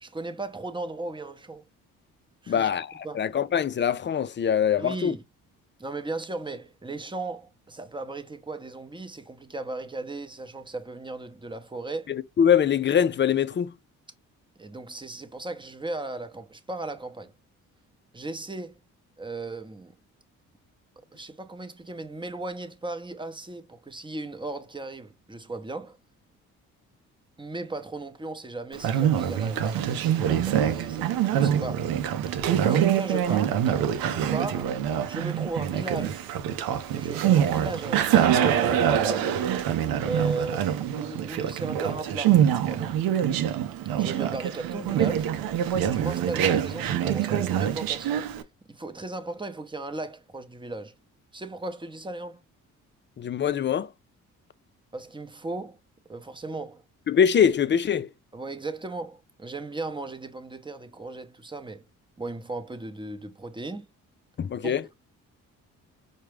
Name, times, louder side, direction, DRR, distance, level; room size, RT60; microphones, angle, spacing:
voice 1, 0.0-1.6 2.4-2.7 3.0-3.3 4.8-5.2 5.8-12.1 14.6-17.3 18.1-18.8 19.2-19.9 21.1-26.0 27.4-31.9 32.6-33.6 34.0-34.8 35.1-36.2 36.9-39.3 40.0-42.4 42.7-43.0 44.0-45.3 45.9-48.3 48.7-50.9 51.3-52.4 54.9-55.8 56.1-56.8 58.3-61.8 62.2-63.9 64.6-64.8, right 2 dB, 15° right, 0.8 m, -36 dB
voice 2, 2.5-5.1 12.1-13.7 53.2-53.9 57.1-58.1 64.4-64.8, left 8 dB, 35° left, 0.4 m, -23 dB
Conversation, 28.7-48.4, right 10 dB, 80° right, 0.6 m, -25 dB
4.7 x 2.2 x 3.2 m
supercardioid pair, 55°, 35 cm